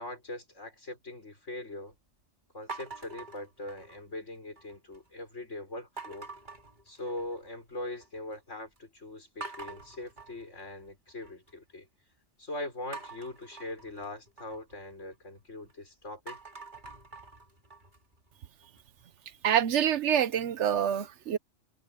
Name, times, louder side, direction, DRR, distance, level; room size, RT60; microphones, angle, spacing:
voice 1, 0.0-1.9 2.5-6.3 6.9-11.9 12.4-16.4, left 1 dB, 70° left, 6.4 m, -41 dB
sound 1, 2.7-4.2 4.6-5.1 6.0-7.5 7.8-8.4 8.8-8.9 9.4-11.5 12.9-15.7 16.1-19.0, right 3 dB, 40° right, 3.0 m, -46 dB
voice 2, 19.4-21.4, right 9 dB, 70° right, 1.0 m, -26 dB
omnidirectional pair, 1.3 m